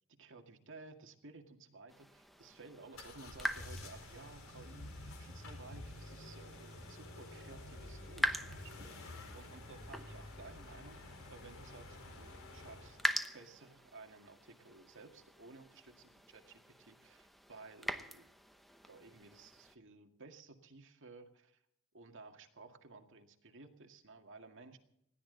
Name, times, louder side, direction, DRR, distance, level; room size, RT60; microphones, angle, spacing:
voice 1, 0.1-18.3 18.9-21.6 21.9-24.8, right 3 dB, 60° right, 4 dB, 2.0 m, -56 dB
sound 1, 1.9-19.8, equal, ahead, 0.9 m, -44 dB
sound 2, 2.9-13.1, left 2 dB, 65° left, 4.2 m, -50 dB
20.5 x 16.0 x 4.0 m, 0.76 s
head